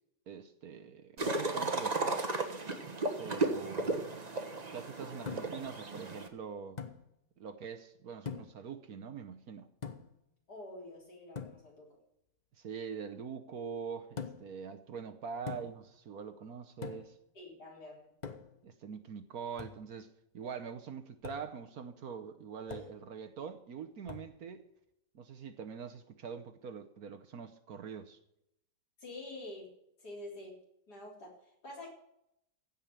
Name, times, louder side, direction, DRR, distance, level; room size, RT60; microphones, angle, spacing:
voice 1, 0.3-2.3 3.2-4.1 4.7-6.8 7.4-9.7 12.6-17.2 18.6-24.7 25.1-28.2, right 6 dB, 60° right, 1.3 m, -44 dB
sound 1, 1.2-6.3, right 3 dB, 25° right, 1.1 m, -34 dB
sound 2, 5.3-5.7 6.8-7.0 8.3-8.6 9.8-10.2 11.4-11.6 14.2-14.6 15.5-15.9 16.8-17.2 18.2-18.6 19.6-19.8 21.2-21.5 22.7-23.0 24.1-24.3, left 6 dB, 35° left, 0.7 m, -43 dB
voice 2, 10.5-12.0 17.3-18.1 22.7-22.9 29.0-29.7 30.0-30.6 30.9-31.9, left 2 dB, 60° left, 4.3 m, -47 dB
16.0 x 5.5 x 8.8 m
omnidirectional pair, 1.9 m